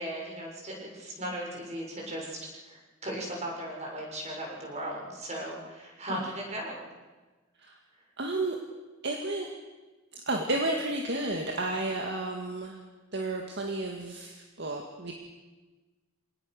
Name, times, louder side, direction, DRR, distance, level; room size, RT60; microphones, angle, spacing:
voice 1, 0.0-6.9, right 1 dB, 30° right, -1 dB, 6.9 m, -37 dB
voice 2, 8.2-8.6 9.0-9.5 10.1-12.8 13.1-15.1, right 2 dB, 55° right, 1 dB, 2.1 m, -32 dB
27.0 x 19.0 x 6.6 m, 1.2 s
head